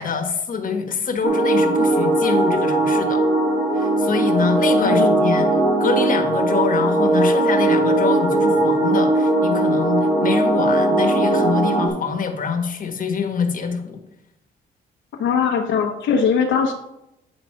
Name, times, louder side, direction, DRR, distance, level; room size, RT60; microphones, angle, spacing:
voice 1, 0.0-3.2 3.7-5.5 5.8-14.0, left 5 dB, 45° left, 3 dB, 1.4 m, -25 dB
sound 1, 1.2-11.9, right 2 dB, 85° right, 2.4 m, -19 dB
voice 2, 4.8-5.2 15.2-16.7, left 6 dB, 75° left, 2 dB, 1.1 m, -20 dB
8.8 x 3.9 x 5.7 m, 0.86 s
cardioid pair, 90°, 20 cm